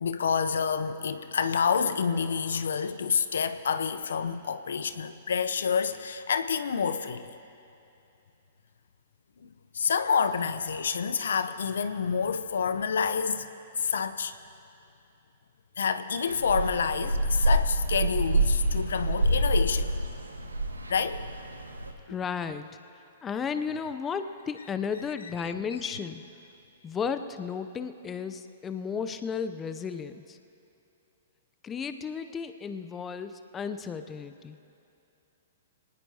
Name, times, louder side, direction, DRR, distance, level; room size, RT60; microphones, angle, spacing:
voice 1, 0.0-7.3 9.4-13.5 13.7-14.3 15.8-19.9 20.9-21.3 22.1-22.2 25.4-25.5 25.8-25.9, left 6 dB, 70° left, 0.7 m, -28 dB
sound 1, 16.3-21.9, right 1 dB, 90° right, 1.2 m, -27 dB
voice 2, 22.1-22.7 23.2-26.2 26.8-30.4 31.6-34.6, left 6 dB, 20° left, 0.6 m, -34 dB
25.0 x 19.0 x 2.8 m
figure-of-eight pair, 115°, 0 cm